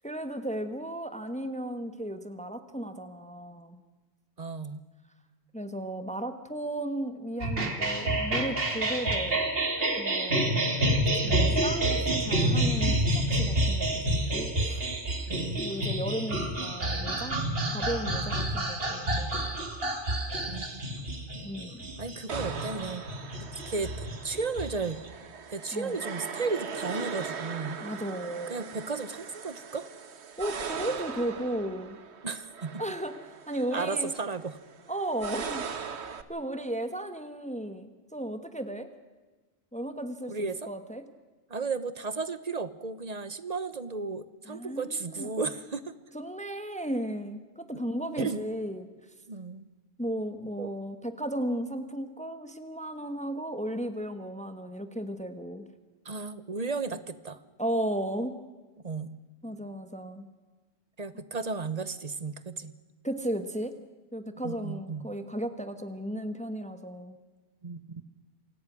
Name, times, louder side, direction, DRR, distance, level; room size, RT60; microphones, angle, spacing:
voice 1, 0.0-3.8 5.5-9.4 10.0-10.5 11.2-14.0 14.3-14.7 15.6-17.4 17.7-19.5 21.4-21.9 25.7-25.9 27.8-28.6 30.4-32.0 32.8-34.1 34.9-35.7 36.3-38.9 39.7-41.0 44.5-45.3 46.1-48.9 50.0-55.7 57.6-58.3 59.4-60.3 63.0-63.7 64.1-67.2, right 1 dB, 5° left, 9 dB, 1.3 m, -35 dB
voice 2, 4.4-4.8 10.3-11.6 12.3-12.4 15.3-15.6 20.5-21.1 22.0-23.0 23.5-23.9 24.2-25.0 25.5-27.8 28.5-29.9 32.2-32.8 33.7-34.6 40.3-40.7 41.5-45.9 47.7-47.8 48.2-48.4 49.3-49.7 50.6-50.7 56.0-57.4 58.8-59.2 61.0-62.7 64.4-65.1 67.6-68.0, right 4 dB, 40° right, 14 dB, 1.2 m, -34 dB
sound 1, 7.4-25.1, right 1 dB, 60° right, 2.6 m, -28 dB
sound 2, 22.3-36.2, right 6 dB, 85° right, 1.4 m, -40 dB
27.5 x 17.5 x 6.2 m, 1.3 s
omnidirectional pair, 1.1 m